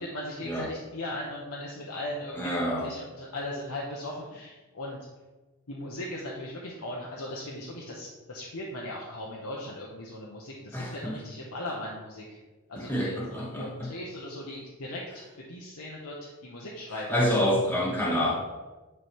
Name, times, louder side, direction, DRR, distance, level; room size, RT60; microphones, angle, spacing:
voice 1, 0.1-5.0 5.7-12.4 12.7-17.1, left 1 dB, 85° left, -3 dB, 1.0 m, -38 dB
voice 2, 2.4-2.9 10.7-11.2 12.8-13.9 17.1-18.3, equal, 10° left, -4 dB, 0.9 m, -27 dB
9.6 x 3.3 x 4.4 m, 1.2 s
head